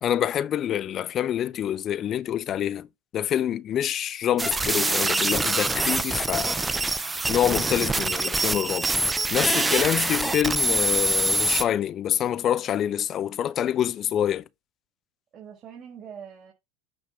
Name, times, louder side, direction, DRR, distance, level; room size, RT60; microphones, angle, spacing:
voice 1, 0.0-2.9 3.1-7.0 7.3-8.9 9.3-14.5, left 10 dB, 40° left, 0.6 m, -26 dB
sound 1, 4.4-11.6, right 2 dB, 15° right, 0.7 m, -25 dB
voice 2, 9.9-10.2 15.3-16.5, right 7 dB, 40° right, 3.8 m, -43 dB
8.7 x 3.4 x 4.8 m
hypercardioid pair, 95°, 0 cm